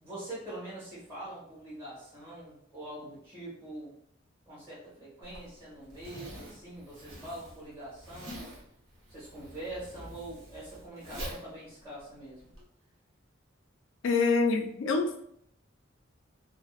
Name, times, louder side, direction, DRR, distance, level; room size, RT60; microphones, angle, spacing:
voice 1, 0.0-3.9 4.5-8.4 9.1-12.5, right 1 dB, 20° right, -12 dB, 1.1 m, -44 dB
Zipper (clothing), 5.2-12.6, equal, 85° right, 0.8 m, -46 dB
voice 2, 14.0-15.2, left 4 dB, 70° left, 5 dB, 0.3 m, -26 dB
2.6 x 2.0 x 2.3 m, 0.70 s
head